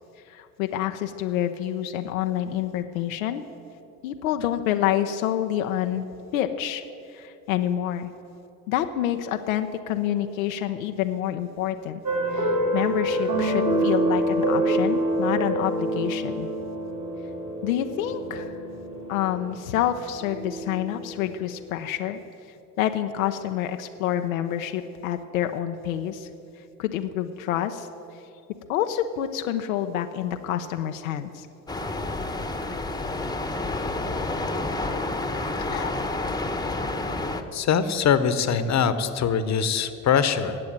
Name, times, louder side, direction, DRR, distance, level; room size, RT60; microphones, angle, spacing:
voice 1, 0.3-3.4 4.0-6.1 6.3-6.8 7.1-8.1 8.7-12.0 12.3-16.5 17.6-18.5 19.1-22.2 22.8-26.3 26.8-27.9 28.7-31.5 35.7-35.9, left 11 dB, 90° left, 6 dB, 0.6 m, -27 dB
sound 1, 12.0-21.3, right 1 dB, 45° right, 3.0 m, -26 dB
sound 2, 31.7-37.4, left 2 dB, 10° left, 1.0 m, -29 dB
voice 2, 37.5-40.6, left 7 dB, 45° left, 12 dB, 1.0 m, -23 dB
10.5 x 7.8 x 8.9 m, 2.7 s
hypercardioid pair, 65°, 40 cm